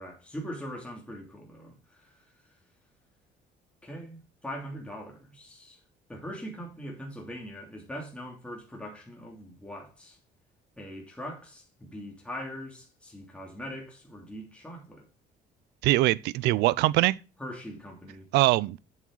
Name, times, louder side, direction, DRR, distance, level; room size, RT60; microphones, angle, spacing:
voice 1, 0.0-2.2 3.8-5.8 6.1-10.2 10.8-15.1 17.4-18.3, equal, 5° left, 2.9 m, -41 dB
voice 2, 15.8-17.2 18.3-18.8, right 18 dB, 85° right, 0.5 m, -22 dB
8.2 x 7.5 x 3.9 m
cardioid pair, 110°, 17 cm